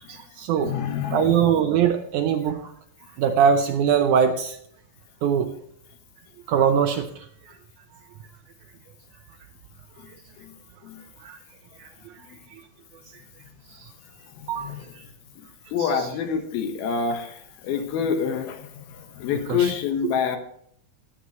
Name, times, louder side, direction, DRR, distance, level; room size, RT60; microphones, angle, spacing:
voice 1, 0.1-0.7 1.1-2.7 3.2-4.6 5.2-5.5 6.5-7.6 11.2-11.4 11.8-12.1 13.7-13.9 14.5-14.7 19.6-19.7, right 7 dB, 80° right, 6 dB, 1.8 m, -22 dB
voice 2, 0.6-1.3 10.0-10.6 10.8-11.0 12.2-12.4 14.2-14.9 15.4-20.4, left 7 dB, 80° left, 6 dB, 3.2 m, -28 dB
19.0 x 8.3 x 3.1 m, 0.64 s
omnidirectional pair, 4.3 m